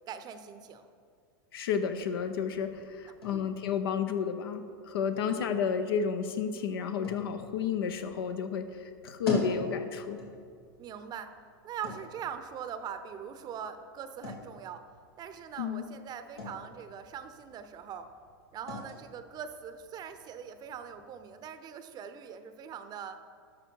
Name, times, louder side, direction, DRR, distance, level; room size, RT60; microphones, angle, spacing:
voice 1, 0.1-0.9 2.4-2.5 3.3-3.5 5.2-5.4 10.8-11.3 11.6-14.9 15.2-18.1 18.5-23.2, right 8 dB, 35° right, 10 dB, 0.7 m, -42 dB
voice 2, 1.5-10.2 15.6-15.9, left 7 dB, 75° left, 8 dB, 0.9 m, -32 dB
sound 1, 1.7-21.3, left 3 dB, 90° left, 2.5 m, -44 dB
12.5 x 6.4 x 4.6 m, 2.3 s
hypercardioid pair, 110°, 13 cm